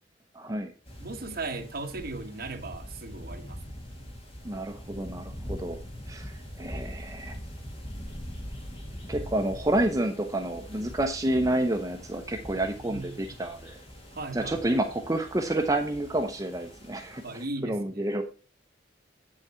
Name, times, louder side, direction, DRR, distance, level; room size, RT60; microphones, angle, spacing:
voice 1, 0.3-0.7 4.4-5.8 6.1-7.4 9.1-13.8 14.3-18.2, right 1 dB, 20° right, 0.7 m, -29 dB
sound 1, 0.8-17.5, equal, 30° left, 2.1 m, -42 dB
voice 2, 1.0-3.6 12.8-13.2 14.1-14.6 17.2-18.2, right 3 dB, 55° right, 1.4 m, -37 dB
8.6 x 6.4 x 4.4 m
head